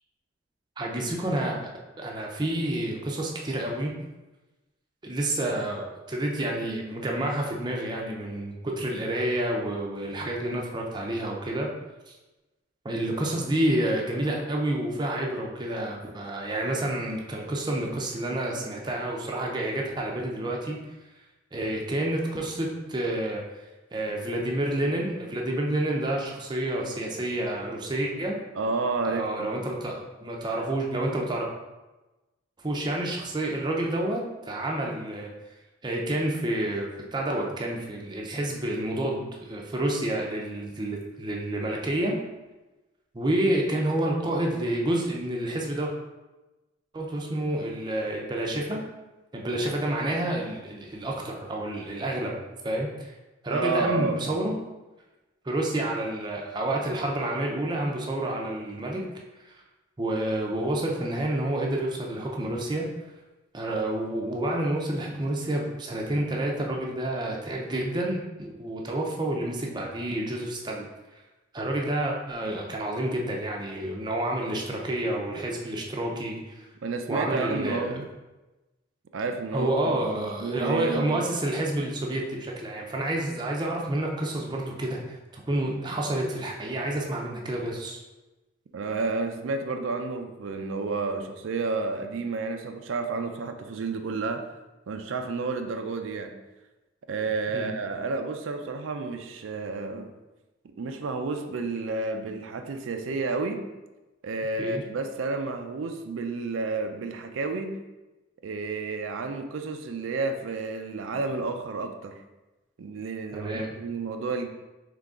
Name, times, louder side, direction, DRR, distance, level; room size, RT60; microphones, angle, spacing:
voice 1, 0.8-3.9 5.0-11.7 12.1-12.2 12.8-20.8 21.5-23.4 23.9-28.4 29.0-31.5 32.6-35.3 35.8-42.2 43.1-45.9 46.9-48.8 49.3-52.4 52.6-53.1 53.4-54.5 55.4-59.1 59.4-59.6 60.0-62.9 63.5-70.9 71.1-71.2 71.5-76.7 77.1-78.0 79.5-85.2 85.5-88.0 97.5-97.7 104.6-104.8 113.3-113.7, right 1 dB, 25° right, -1 dB, 0.5 m, -29 dB
voice 2, 28.6-29.5 53.5-54.4 76.8-78.1 79.1-81.2 88.7-94.4 94.9-96.3 97.1-100.1 100.6-103.6 104.2-107.7 108.4-112.2 112.8-114.5, right 3 dB, 90° right, 6 dB, 0.4 m, -31 dB
3.8 x 3.2 x 3.6 m, 1.1 s
head